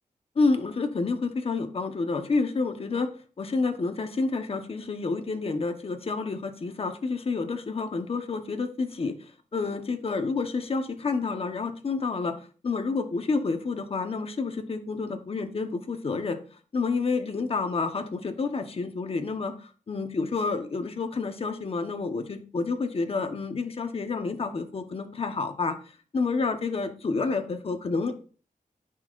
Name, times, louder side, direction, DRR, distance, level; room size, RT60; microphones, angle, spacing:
voice 1, 0.3-3.1 3.4-9.1 9.5-12.4 12.6-16.4 16.7-25.7 26.1-28.2, left 4 dB, 45° left, 6 dB, 1.2 m, -29 dB
17.0 x 5.8 x 2.6 m, 0.39 s
wide cardioid pair, 135°, 14 cm